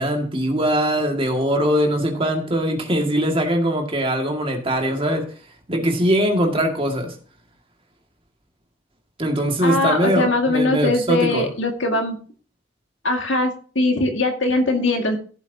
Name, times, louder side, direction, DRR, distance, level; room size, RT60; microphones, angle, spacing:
voice 1, 0.0-5.3 5.7-7.1 9.2-11.5, equal, 30° right, 2.0 m, -21 dB
voice 2, 9.6-12.2 13.0-15.2, left 2 dB, 65° left, 2.0 m, -21 dB
15.5 x 8.1 x 2.8 m
head